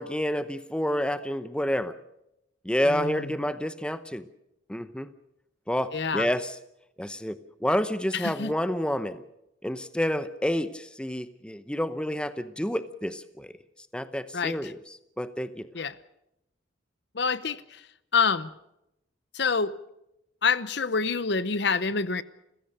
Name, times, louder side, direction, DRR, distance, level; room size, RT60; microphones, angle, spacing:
voice 1, 0.0-2.0 2.6-4.2 4.7-5.1 5.7-6.5 7.0-9.2 9.6-13.5 13.9-14.8 15.2-15.7, equal, 5° left, 0.8 m, -29 dB
voice 2, 2.9-3.3 5.9-6.3 8.1-8.5 14.3-14.7 15.7-16.0 17.1-17.8 18.1-18.5 19.3-19.7 20.4-22.2, left 5 dB, 55° left, 0.8 m, -27 dB
29.5 x 16.0 x 6.7 m
head